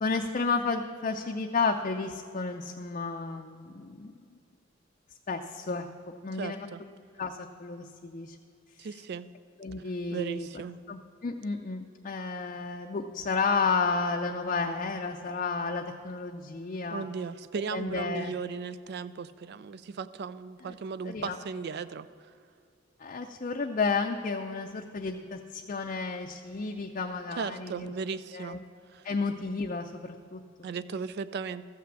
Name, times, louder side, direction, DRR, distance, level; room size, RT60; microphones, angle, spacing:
voice 1, 0.0-4.4 5.3-5.9 6.2-6.7 7.2-8.4 8.8-8.9 9.6-10.5 10.9-17.0 17.7-18.3 20.6-20.8 21.0-21.4 23.0-27.9 28.3-28.6 29.0-30.4, left 4 dB, 40° left, 3 dB, 0.5 m, -32 dB
voice 2, 6.4-6.8 8.8-9.3 10.1-10.8 16.9-22.1 27.4-28.6 28.9-29.0 30.6-31.7, right 5 dB, 55° right, 15 dB, 0.4 m, -36 dB
14.0 x 5.9 x 7.5 m, 2.3 s
head